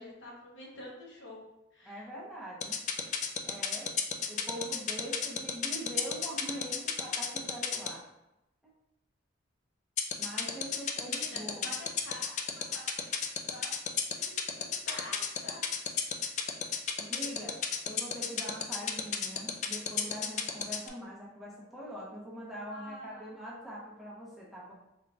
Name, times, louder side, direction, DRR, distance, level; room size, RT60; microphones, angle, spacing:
voice 1, 0.0-1.4 1.7-2.0 10.8-13.2 13.5-16.2 22.7-23.3, left 1 dB, 70° left, -3 dB, 1.0 m, -48 dB
voice 2, 1.8-2.8 3.4-3.9 4.3-8.0 8.6-8.7 10.2-11.7 17.0-17.6 17.8-24.7, equal, ahead, -6 dB, 0.8 m, -43 dB
sound 1, 2.6-7.9 10.0-20.9, left 8 dB, 40° left, 0.4 m, -31 dB
3.8 x 3.6 x 2.3 m, 0.92 s
head